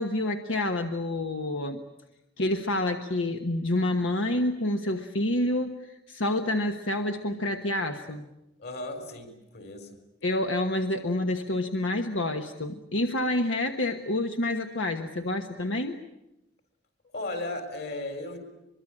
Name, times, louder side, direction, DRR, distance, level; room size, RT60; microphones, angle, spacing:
voice 1, 0.0-1.8 2.4-8.2 10.2-16.0, left 1 dB, 80° left, 6 dB, 1.3 m, -28 dB
voice 2, 8.6-9.9 17.1-18.4, left 2 dB, 55° left, 7 dB, 4.3 m, -35 dB
23.5 x 23.5 x 8.7 m, 0.92 s
head